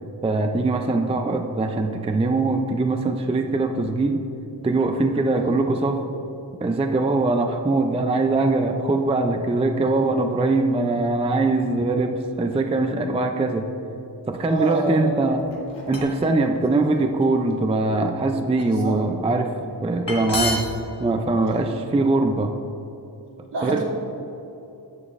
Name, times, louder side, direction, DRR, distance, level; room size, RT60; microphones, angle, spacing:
voice 1, 0.2-4.2 4.6-6.0 6.6-13.7 14.3-15.4 15.9-20.7 21.0-22.5 23.6-23.8, right 2 dB, 15° right, 5 dB, 0.3 m, -22 dB
voice 2, 14.5-15.1 18.6-19.0 19.9-20.1 23.5-23.9, right 4 dB, 65° right, -3 dB, 1.6 m, -29 dB
sound 1, 15.4-16.3 16.9-17.2 17.8-18.6 19.8-19.9 20.0-20.8, left 2 dB, 90° left, 1.5 m, -29 dB
11.0 x 7.0 x 2.5 m, 3.0 s
wide cardioid pair, 105°, 43 cm